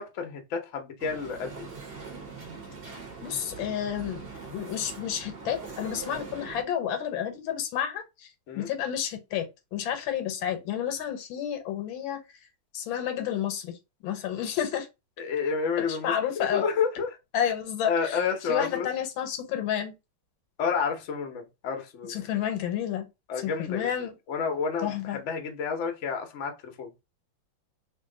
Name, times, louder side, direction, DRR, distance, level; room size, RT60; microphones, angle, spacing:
voice 1, 0.0-1.7 8.5-8.7 15.2-17.2 17.8-18.9 20.6-22.2 23.3-24.0 24.3-26.9, left 5 dB, 55° left, 0.8 m, -30 dB
sound 1, 1.0-6.6, right 4 dB, 45° right, 0.7 m, -42 dB
voice 2, 3.2-8.3 8.6-12.2 12.7-13.8 14.0-14.9 15.8-16.6 17.3-18.2 18.5-19.9 22.1-23.1 23.4-24.1 24.8-25.2, left 9 dB, 80° left, 1.5 m, -30 dB
3.0 x 2.6 x 3.7 m
omnidirectional pair, 2.2 m